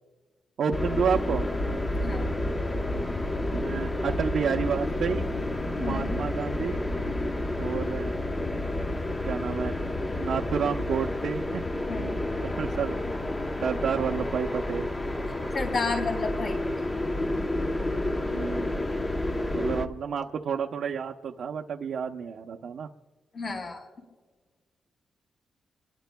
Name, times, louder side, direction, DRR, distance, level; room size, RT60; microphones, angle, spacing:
voice 1, 0.6-1.4 3.5-5.3 5.8-6.8 7.6-8.1 9.2-9.7 10.1-11.6 12.0-12.1 12.4-13.0 13.6-14.9 18.2-19.0 19.5-22.9, right 7 dB, 60° right, 1 dB, 0.8 m, -30 dB
sound 1, 0.7-19.9, left 1 dB, 15° left, 0.9 m, -30 dB
voice 2, 1.9-2.4 5.8-6.2 11.9-12.2 15.5-16.9 23.3-23.9, left 3 dB, 45° left, -1 dB, 5.4 m, -32 dB
28.5 x 22.0 x 2.3 m, 1.4 s
wide cardioid pair, 160°, 0 cm